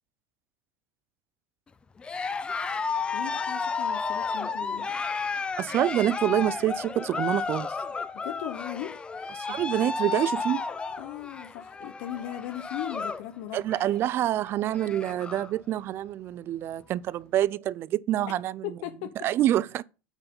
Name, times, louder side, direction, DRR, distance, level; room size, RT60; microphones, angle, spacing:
Cheering, 2.0-13.3 13.6-14.0 14.4-14.5 14.7-15.5, left 5 dB, 15° left, 0.5 m, -32 dB
voice 1, 3.1-4.9 8.2-9.0 9.5-9.6 11.0-13.6 18.6-19.2, left 13 dB, 60° left, 0.8 m, -38 dB
voice 2, 5.6-7.7 9.4-10.6 13.5-18.8 19.2-19.8, right 13 dB, 35° right, 0.3 m, -27 dB
8.8 x 4.6 x 5.3 m
supercardioid pair, 135°, 7 cm